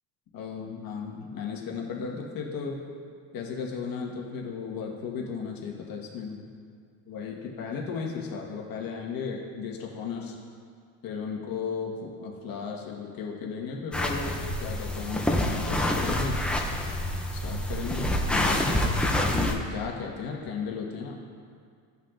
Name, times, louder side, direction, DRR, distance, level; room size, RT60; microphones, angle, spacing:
voice 1, 0.3-2.8 3.3-6.5 7.1-10.4 11.0-16.4 17.3-21.2, left 5 dB, 50° left, -1 dB, 1.5 m, -35 dB
sound 1, 13.9-19.5, left 1 dB, 5° left, 0.4 m, -27 dB
15.5 x 5.6 x 2.5 m, 2.2 s
cardioid pair, 150°, 44 cm